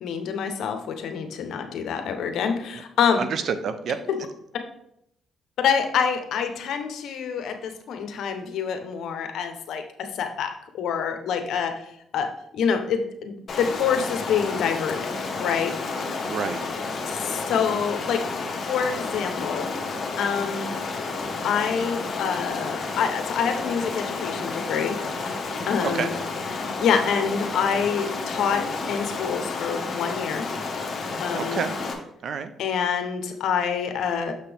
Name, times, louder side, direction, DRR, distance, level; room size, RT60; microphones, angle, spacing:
voice 1, 0.0-3.2 5.6-11.8 12.1-15.1 15.4-15.7 17.0-18.2 18.7-19.7 20.2-20.7 21.4-25.0 25.7-26.1 26.8-30.4 31.2-31.6 32.6-34.3, left 7 dB, 75° left, 7 dB, 0.9 m, -26 dB
voice 2, 3.2-4.0 16.2-16.7 25.9-26.1 31.3-31.8 32.2-32.5, right 6 dB, 60° right, 11 dB, 0.6 m, -28 dB
Stream, 13.5-31.9, left 4 dB, 50° left, 1.3 m, -31 dB
6.8 x 5.8 x 3.5 m, 0.75 s
cardioid pair, 90°, 0 cm